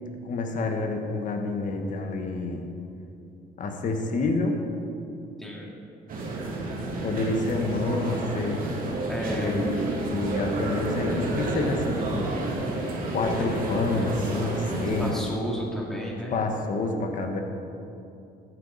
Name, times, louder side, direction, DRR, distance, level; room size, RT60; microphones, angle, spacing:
voice 1, 0.2-2.7 3.6-4.6 7.0-8.7 9.3-9.7 10.1-12.4 13.1-15.1 16.3-17.4, left 3 dB, 50° left, 4 dB, 1.5 m, -28 dB
voice 2, 5.4-5.8 9.1-9.7 15.0-16.4, equal, ahead, -3 dB, 2.5 m, -32 dB
sound 1, 6.1-15.1, right 2 dB, 55° right, 2.5 m, -30 dB
15.0 x 9.4 x 4.2 m, 2.8 s
cardioid pair, 110°, 17 cm